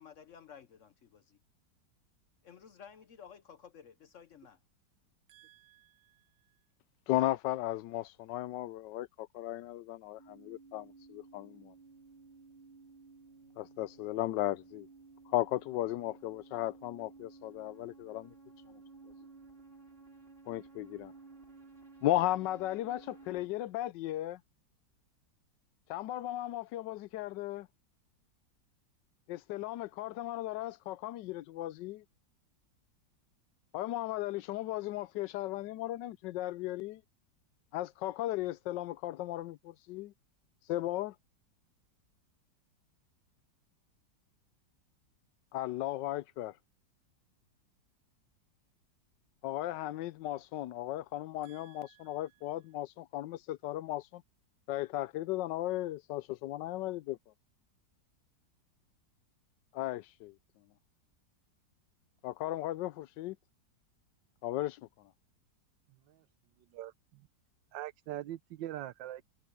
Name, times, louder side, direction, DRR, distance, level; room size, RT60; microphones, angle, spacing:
voice 1, 0.0-1.4 2.4-4.6, left 7 dB, 60° left, 0.9 m, -54 dB
voice 2, 5.3-5.9 51.4-52.0 66.1-66.2 66.7-67.2 67.7-69.2, right 13 dB, 85° right, 1.4 m, -43 dB
voice 3, 7.1-11.7 13.6-14.9 15.3-18.3 20.5-21.1 22.0-24.4 25.9-27.7 29.3-32.0 33.7-37.0 37.7-40.1 40.7-41.1 45.5-46.5 49.4-54.2 54.7-57.2 59.7-60.3 62.2-63.4 64.4-64.8, left 15 dB, 80° left, 1.2 m, -36 dB
sound 1, 10.2-23.5, right 4 dB, 30° right, 6.7 m, -56 dB
omnidirectional pair, 2.0 m